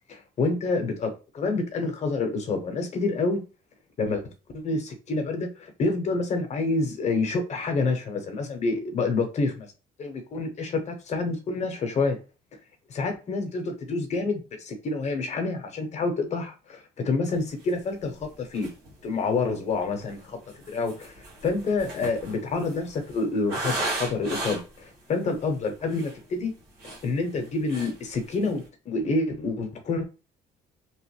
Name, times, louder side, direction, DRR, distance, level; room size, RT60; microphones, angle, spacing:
voice 1, 0.1-3.4 4.0-9.7 10.0-12.2 12.9-18.7 19.0-20.4 20.7-21.1 21.4-26.5 27.0-30.0, left 3 dB, 40° left, 0.9 m, -28 dB
sound 1, 17.7-17.8 18.2-18.3 18.5-19.0 19.8-24.8 25.4-25.5 25.8-26.2 26.6-27.4 27.7-28.0 28.3-28.6, right 2 dB, 75° right, 1.3 m, -35 dB
3.0 x 2.1 x 3.1 m
cardioid pair, 110°, 17 cm